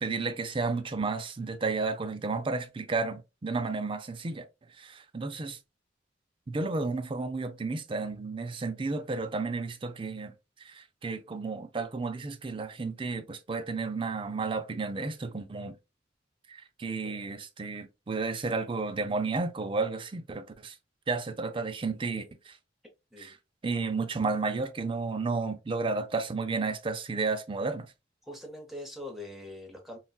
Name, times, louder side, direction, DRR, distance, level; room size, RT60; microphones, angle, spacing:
voice 1, 0.0-4.4 4.7-5.6 6.5-10.3 10.6-15.8 16.5-20.8 21.1-22.6 23.2-23.4 23.6-27.9, right 3 dB, 30° right, 0.4 m, -32 dB
voice 2, 28.2-30.0, left 1 dB, ahead, 0.8 m, -43 dB
3.9 x 2.2 x 2.2 m
head